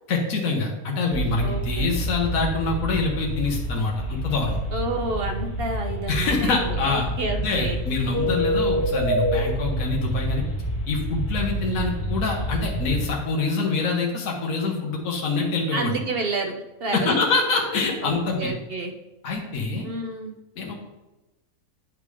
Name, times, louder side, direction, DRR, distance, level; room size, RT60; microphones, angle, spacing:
voice 1, 0.1-4.6 6.1-10.4 10.9-16.0 16.9-18.5 19.2-19.8 20.6-20.7, left 3 dB, 65° left, -1 dB, 1.5 m, -25 dB
sound 1, 1.1-13.1, equal, 45° left, 2.7 m, -28 dB
voice 2, 1.4-1.9 4.7-8.4 15.7-17.2 18.0-18.9 19.8-20.3, right 3 dB, 55° right, 4 dB, 0.7 m, -30 dB
9.6 x 3.7 x 4.8 m, 1.0 s
omnidirectional pair, 1.6 m